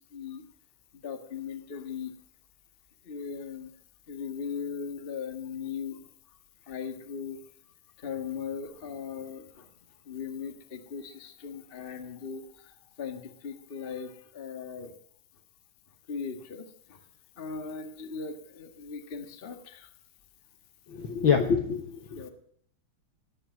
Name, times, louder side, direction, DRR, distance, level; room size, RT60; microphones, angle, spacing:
voice 1, 0.1-0.4 1.0-2.1 3.0-3.7 4.1-6.0 6.7-7.4 8.0-9.6 10.1-12.4 13.0-14.9 16.1-16.6 16.9-17.0 17.4-19.9 22.1-22.3, left 6 dB, 35° left, 6 dB, 0.8 m, -38 dB
voice 2, 20.9-22.3, left 6 dB, 60° left, 5 dB, 1.3 m, -26 dB
19.0 x 7.7 x 9.3 m, 0.66 s
omnidirectional pair, 3.7 m